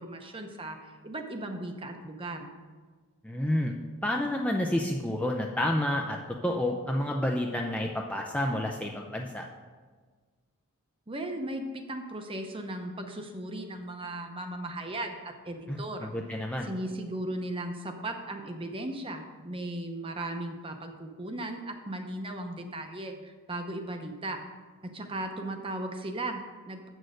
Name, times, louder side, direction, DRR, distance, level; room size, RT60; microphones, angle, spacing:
voice 1, 0.0-2.5 11.1-16.1 16.7-24.4 24.8-26.9, right 1 dB, 25° right, 5 dB, 0.7 m, -37 dB
voice 2, 3.2-6.2 6.4-9.4 15.7-16.7, left 1 dB, 5° left, 1 dB, 0.4 m, -29 dB
7.9 x 6.4 x 6.4 m, 1.5 s
head